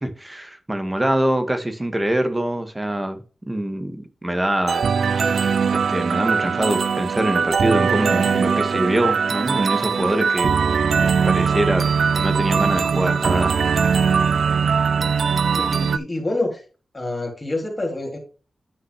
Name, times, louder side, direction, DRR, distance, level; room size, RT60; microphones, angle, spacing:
voice 1, 0.0-3.2 3.5-4.9 5.7-10.7 11.3-11.8 12.1-13.5, right 1 dB, 15° right, 1.8 m, -24 dB
sound 1, 4.7-16.0, right 6 dB, 70° right, 0.5 m, -20 dB
voice 2, 15.6-16.6 16.9-18.2, left 2 dB, 25° left, 3.3 m, -27 dB
10.0 x 5.5 x 3.3 m
wide cardioid pair, 90°, 0 cm